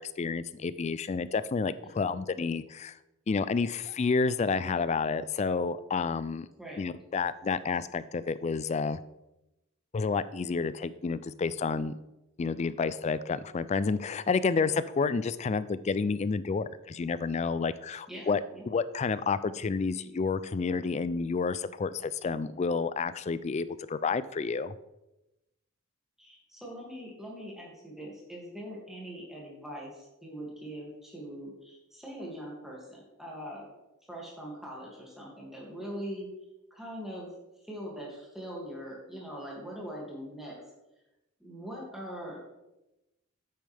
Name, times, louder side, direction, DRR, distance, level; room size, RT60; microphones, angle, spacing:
voice 1, 0.0-3.0 3.3-6.5 6.8-9.0 9.9-11.9 12.4-18.4 18.7-24.7, left 4 dB, 30° left, 15 dB, 0.3 m, -30 dB
voice 2, 18.1-18.7 26.2-33.7 34.1-36.3 36.7-37.3 37.6-40.6 41.4-42.4, equal, ahead, -4 dB, 2.3 m, -42 dB
9.0 x 8.5 x 3.4 m, 0.95 s
head